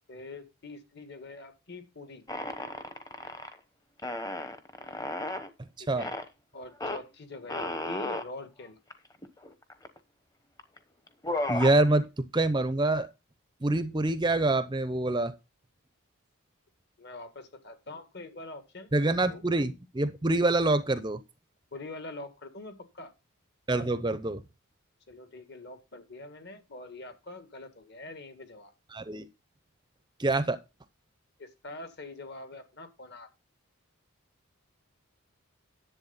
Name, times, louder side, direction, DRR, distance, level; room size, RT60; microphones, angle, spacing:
voice 1, 0.1-2.2 5.8-6.1 6.5-8.8 17.0-18.9 19.3-19.4 21.7-23.1 25.1-28.7 31.4-33.3, left 2 dB, 50° left, 1.8 m, -44 dB
sound 1, 2.3-3.6 4.0-5.5 6.0-6.3 6.8-7.0 7.5-8.3 8.9-9.0 9.2-10.0 10.6-10.8 11.1-11.8, left 2 dB, 15° left, 1.0 m, -34 dB
voice 2, 11.5-13.1 13.6-15.3 18.9-21.2 23.7-24.4 28.9-29.3 30.2-30.6, right 2 dB, 20° right, 0.6 m, -26 dB
10.5 x 7.9 x 4.0 m
head